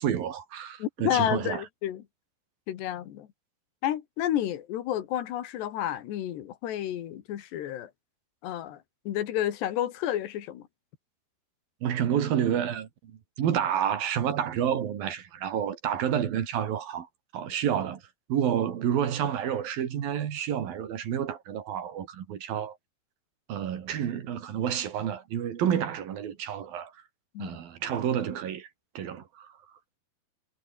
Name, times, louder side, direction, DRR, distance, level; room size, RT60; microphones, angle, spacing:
voice 1, 0.0-1.6 11.8-12.9 13.4-17.1 17.3-18.0 18.3-22.8 23.5-26.9 27.4-28.7 29.0-29.5, right 9 dB, 65° right, 3.8 m, -29 dB
voice 2, 0.8-2.0 2.7-3.3 3.8-7.9 8.4-10.7 27.4-27.6, left 12 dB, 90° left, 4.0 m, -31 dB
omnidirectional pair, 4.8 m